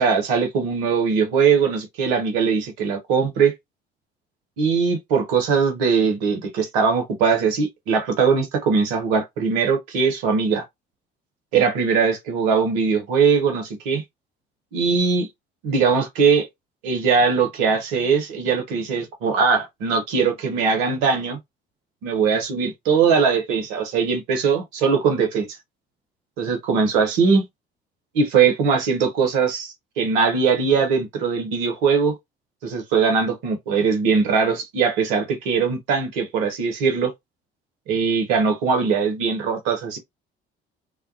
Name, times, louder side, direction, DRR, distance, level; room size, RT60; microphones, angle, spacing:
voice 1, 0.0-3.5 4.6-10.6 11.5-14.0 14.7-15.3 15.6-16.5 16.8-21.4 22.0-25.5 26.4-27.4 28.1-32.2 32.6-37.1 37.9-40.0, right 5 dB, 70° right, 0.8 m, -20 dB
2.3 x 2.1 x 2.5 m
figure-of-eight pair, 45°, 30 cm